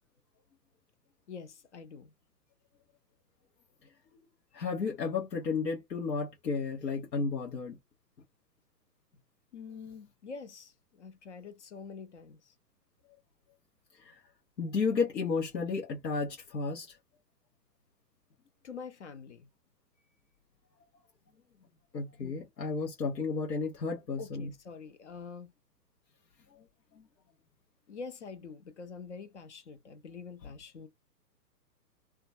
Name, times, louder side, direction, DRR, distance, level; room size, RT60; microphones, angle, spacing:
voice 1, 1.3-2.1 9.5-12.5 18.6-19.5 22.2-22.4 24.2-25.5 27.9-30.9, left 5 dB, 45° left, 0.6 m, -46 dB
voice 2, 4.5-7.8 13.9-14.2 14.6-17.0 21.9-24.5, left 4 dB, 80° left, 0.8 m, -33 dB
2.2 x 2.2 x 2.5 m
figure-of-eight pair, 125°, 50 cm